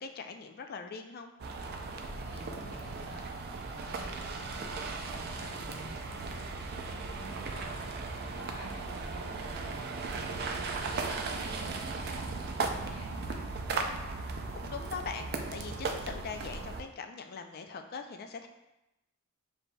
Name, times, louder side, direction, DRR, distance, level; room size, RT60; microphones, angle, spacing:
voice 1, 0.0-1.3 14.5-18.5, left 5 dB, 45° left, 6 dB, 0.3 m, -41 dB
sound 1, 1.4-16.8, right 3 dB, 45° right, 0.3 m, -37 dB
voice 2, 2.1-3.2 3.6-7.8 8.2-13.5, equal, 75° left, -3 dB, 0.9 m, -51 dB
6.9 x 2.7 x 2.2 m, 0.94 s
head